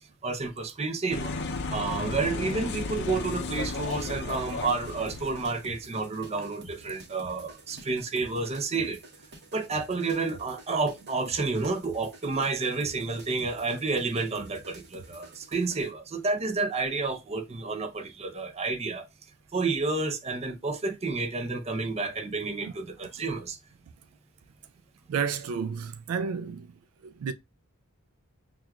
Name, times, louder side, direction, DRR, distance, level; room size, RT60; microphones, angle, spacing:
voice 1, 0.2-1.3 1.7-9.0 9.5-19.1 19.5-23.6, right 3 dB, 30° right, 0.6 m, -30 dB
sound 1, 1.1-5.7, left 3 dB, 50° left, 0.5 m, -34 dB
sound 2, 3.5-15.9, right 1 dB, 50° right, 1.0 m, -49 dB
voice 2, 25.1-26.7 27.0-27.3, right 6 dB, 75° right, 0.3 m, -31 dB
6.0 x 2.4 x 2.3 m
head